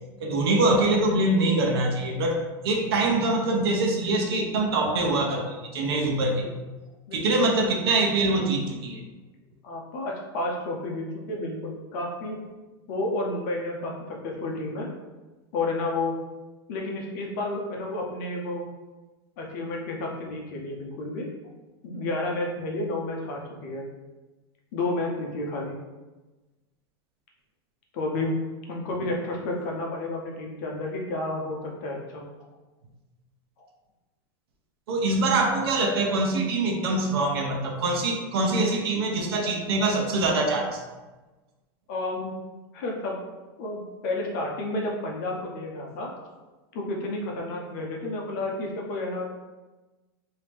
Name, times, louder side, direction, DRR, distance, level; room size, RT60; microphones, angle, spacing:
voice 1, 0.2-6.4 7.1-9.0 34.9-40.8, right 2 dB, 85° right, 1 dB, 0.8 m, -24 dB
voice 2, 7.1-7.4 9.6-12.4 12.9-14.9 15.5-16.2 16.7-18.7 19.4-21.3 21.8-23.9 24.7-25.8 27.9-28.3 28.7-32.3 33.6-33.7 41.9-42.4 42.7-43.2 43.6-46.1 46.7-49.4, left 2 dB, 50° left, -1 dB, 0.7 m, -31 dB
3.0 x 2.7 x 3.4 m, 1.2 s
supercardioid pair, 170°, 13 cm